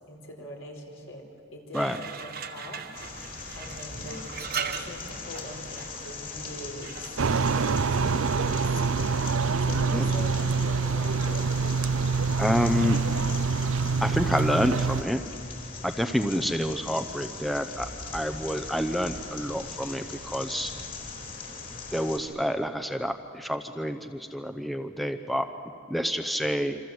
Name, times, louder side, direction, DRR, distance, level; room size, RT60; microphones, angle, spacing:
voice 1, 0.1-1.3 1.5-2.8 3.1-4.4 4.8-7.0 7.3-8.6 9.6-11.5, left 1 dB, 70° left, 1 dB, 4.6 m, -43 dB
sound 1, 1.7-8.7, right 6 dB, 50° right, 1.3 m, -40 dB
sound 2, 2.9-22.2, left 3 dB, 45° left, 4.7 m, -40 dB
sound 3, 7.2-15.0, right 4 dB, 85° right, 0.6 m, -26 dB
voice 2, 12.4-13.0 14.0-15.2 15.8-17.9 18.1-20.7 21.9-25.4 25.9-26.8, equal, ahead, 6 dB, 0.7 m, -28 dB
27.0 x 26.0 x 7.9 m, 2.4 s
head